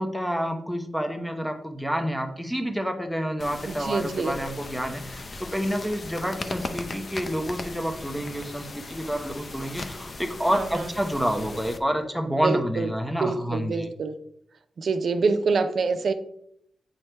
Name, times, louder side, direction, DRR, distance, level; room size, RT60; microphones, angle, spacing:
voice 1, 0.0-13.9, equal, ahead, 5 dB, 0.9 m, -28 dB
sound 1, 3.4-11.8, left 3 dB, 40° left, 0.6 m, -38 dB
voice 2, 3.7-4.4 10.5-10.9 12.4-12.9 13.2-14.1 14.8-16.1, right 4 dB, 65° right, 9 dB, 0.6 m, -26 dB
7.9 x 3.2 x 4.5 m, 0.71 s
cardioid pair, 95°, 0 cm